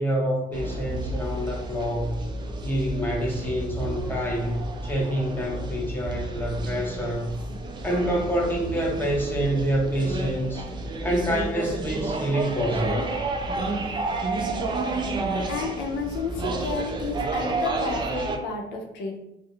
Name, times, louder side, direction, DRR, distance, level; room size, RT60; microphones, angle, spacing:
voice 1, 0.0-2.2 2.6-7.3 7.8-10.7 11.0-13.1, equal, 10° left, -2 dB, 0.7 m, -27 dB
sound 1, 0.5-18.4, right 2 dB, 25° right, 0.3 m, -31 dB
voice 2, 15.5-19.2, left 4 dB, 75° left, 1 dB, 0.6 m, -31 dB
2.4 x 2.0 x 2.8 m, 0.85 s
cardioid pair, 110°, 17 cm